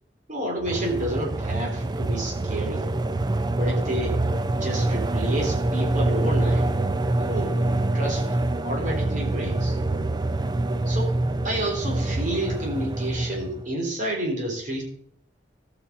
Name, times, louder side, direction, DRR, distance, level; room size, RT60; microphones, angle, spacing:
voice 1, 0.3-2.8 3.6-4.2 4.6-6.7 7.2-7.6 7.9-8.2 8.6-9.8 10.9-11.1 11.4-14.8, right 1 dB, 45° right, -1 dB, 3.3 m, -29 dB
sound 1, 0.6-13.7, right 2 dB, 25° right, 0.5 m, -25 dB
17.0 x 6.0 x 4.1 m, 0.65 s
head